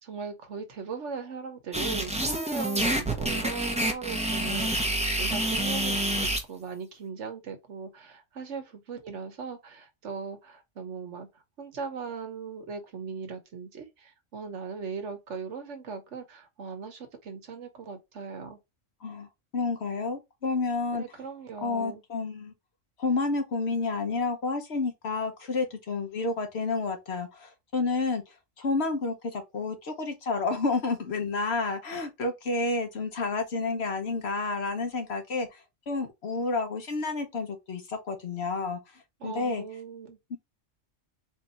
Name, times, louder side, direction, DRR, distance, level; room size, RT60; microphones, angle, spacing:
voice 1, 0.0-11.3 11.6-18.6 20.9-22.0 39.2-40.2, right 5 dB, 65° right, 1.3 m, -39 dB
sound 1, 1.7-6.4, right 1 dB, 5° right, 0.8 m, -28 dB
voice 2, 19.0-21.0 21.6-22.5 23.0-28.2 28.6-35.6 35.9-39.6 40.3-40.4, left 3 dB, 60° left, 1.2 m, -30 dB
4.5 x 2.7 x 4.2 m
omnidirectional pair, 1.3 m